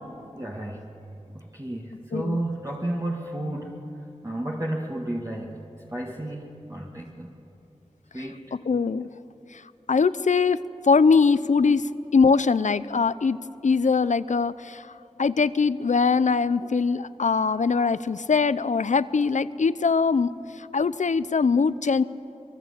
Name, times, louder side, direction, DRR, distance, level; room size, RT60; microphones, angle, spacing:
voice 1, 0.4-0.9 1.3-3.8 4.2-5.6 5.9-7.3 8.1-8.4, right 1 dB, 25° right, -2 dB, 2.1 m, -32 dB
voice 2, 2.1-2.4 8.2-9.1 9.5-9.6 9.9-14.9 15.2-22.0, left 5 dB, 80° left, 15 dB, 0.6 m, -22 dB
23.5 x 23.5 x 8.3 m, 2.8 s
wide cardioid pair, 45°, 12 cm